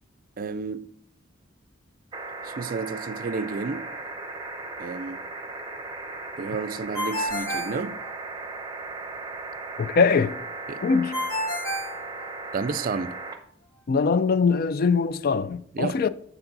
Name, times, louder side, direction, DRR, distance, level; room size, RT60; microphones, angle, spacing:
voice 1, 0.4-0.9 2.4-3.9 4.8-5.2 6.4-8.0 10.7-10.8 12.5-13.2 15.7-16.0, right 4 dB, 45° right, 0.4 m, -31 dB
sound 1, 2.1-13.4 14.8-14.9, right 3 dB, 20° right, 0.8 m, -37 dB
Ringtone, 6.9-8.6 11.1-12.8, equal, 15° left, 1.7 m, -30 dB
voice 2, 9.8-10.4 10.8-11.2 13.9-16.1, left 5 dB, 50° left, 0.4 m, -22 dB
7.1 x 6.9 x 4.0 m
head